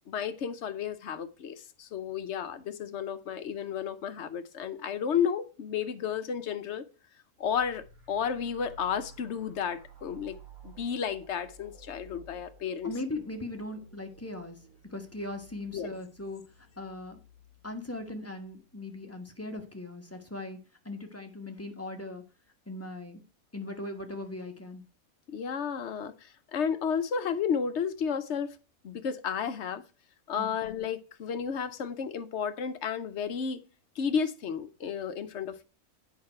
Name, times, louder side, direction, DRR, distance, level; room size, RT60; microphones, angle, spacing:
voice 1, 0.1-6.8 7.4-10.4 10.6-12.9 15.7-15.9 25.3-28.6 28.8-29.8 30.3-33.6 34.0-35.6, left 7 dB, 60° left, 1.0 m, -32 dB
sound 1, 7.4-18.8, right 1 dB, 80° right, 4.0 m, -54 dB
voice 2, 12.8-14.6 14.9-17.2 17.6-20.6 20.8-22.2 22.7-23.2 23.5-24.8 30.4-30.5, left 2 dB, 10° left, 1.2 m, -39 dB
8.6 x 5.6 x 4.4 m
omnidirectional pair, 1.5 m